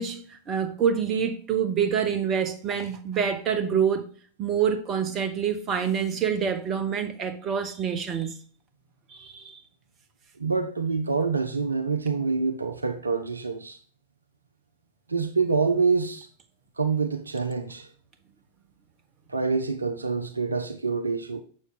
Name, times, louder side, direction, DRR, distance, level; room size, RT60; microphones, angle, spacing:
voice 1, 0.0-4.1 4.4-8.4 9.1-9.6, right 7 dB, 30° right, 1.0 m, -26 dB
voice 2, 10.4-13.8 15.1-16.3 16.8-17.9 19.3-21.4, right 4 dB, 80° right, 0.5 m, -26 dB
6.7 x 6.3 x 2.4 m
figure-of-eight pair, 90°, 0 cm